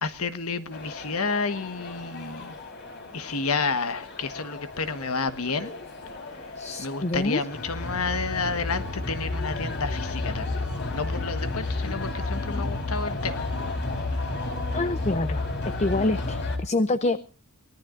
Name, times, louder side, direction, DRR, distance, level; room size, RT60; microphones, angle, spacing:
voice 1, 0.0-2.6 3.1-5.8 6.8-10.6 10.9-13.4, left 4 dB, 75° left, 1.4 m, -30 dB
sound 1, 0.7-16.6, left 2 dB, 55° left, 4.1 m, -32 dB
voice 2, 6.6-7.4 14.7-15.4 15.8-17.2, left 2 dB, 30° left, 0.7 m, -26 dB
24.0 x 18.5 x 2.6 m
head